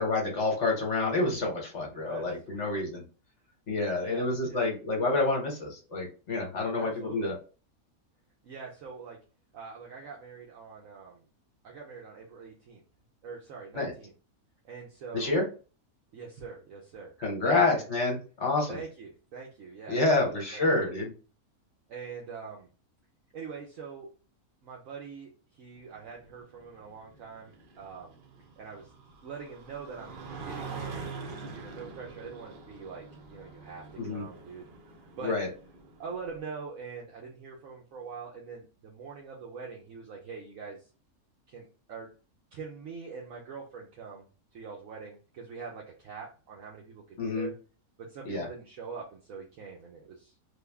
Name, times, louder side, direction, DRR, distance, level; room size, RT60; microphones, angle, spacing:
voice 1, 0.0-3.0 3.7-7.3 13.7-13.9 15.1-15.5 17.2-18.8 19.9-21.1 34.0-34.2 35.2-35.5 47.2-47.5 48.2-48.5, left 3 dB, 55° left, 0 dB, 1.3 m, -28 dB
voice 2, 2.0-2.7 4.0-4.7 6.7-7.4 8.4-9.2 9.5-11.2 11.6-12.8 13.2-14.1 14.6-15.4 16.1-17.1 17.4-17.9 18.7-20.9 21.9-22.7 23.3-24.1 24.6-28.2 28.6-28.9 29.2-31.1 31.5-34.7 35.2-35.4 36.0-40.9 41.5-42.1 42.5-47.6 48.0-50.3, right 5 dB, 70° right, -2 dB, 1.1 m, -44 dB
sound 1, 25.8-36.4, right 4 dB, 50° right, 0.6 m, -45 dB
3.4 x 2.2 x 3.4 m, 0.34 s
omnidirectional pair, 1.6 m